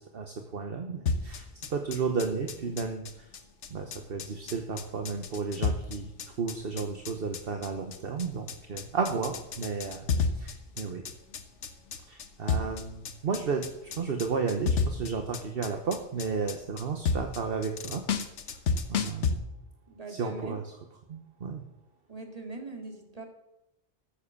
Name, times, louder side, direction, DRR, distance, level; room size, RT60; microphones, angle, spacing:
voice 1, 0.0-3.3 3.7-6.1 6.4-10.1 10.3-11.0 12.1-18.0 18.9-19.6 20.1-20.7 21.1-21.6, right 5 dB, 55° right, 5 dB, 1.2 m, -33 dB
sound 1, 1.1-19.3, left 5 dB, 90° left, 1.3 m, -32 dB
voice 2, 19.9-20.6 22.1-23.2, right 2 dB, 35° right, 2 dB, 2.2 m, -41 dB
13.0 x 7.5 x 7.1 m, 0.90 s
omnidirectional pair, 1.2 m